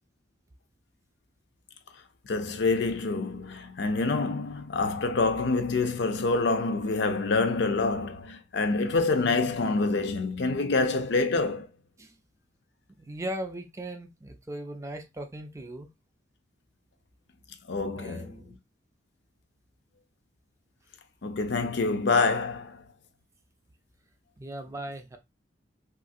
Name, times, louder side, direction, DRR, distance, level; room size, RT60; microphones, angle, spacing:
voice 1, 2.3-11.7 17.7-18.3 21.2-22.8, left 3 dB, 70° left, 0.5 m, -26 dB
voice 2, 13.0-15.9 17.9-18.6 24.4-25.2, right 1 dB, 15° right, 0.4 m, -38 dB
3.1 x 2.5 x 2.6 m
head